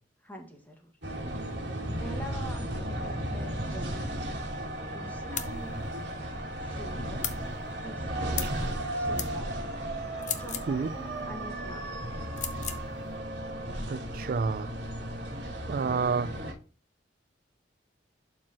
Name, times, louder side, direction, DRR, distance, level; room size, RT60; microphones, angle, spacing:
voice 1, 0.2-1.2 2.0-4.1 4.9-5.9 6.6-7.3 7.8-8.6 8.9-9.5 10.2-11.9, equal, 10° left, 1.6 m, -45 dB
sound 1, 1.0-16.5, right 1 dB, 70° right, 2.5 m, -35 dB
sound 2, 5.4-5.5 7.2-7.4 8.4-8.6 9.2-9.3 10.2-10.7 12.4-12.8, left 10 dB, 40° left, 0.7 m, -34 dB
voice 2, 13.9-14.7 15.7-16.3, right 5 dB, 50° right, 0.3 m, -29 dB
11.5 x 4.5 x 2.9 m
head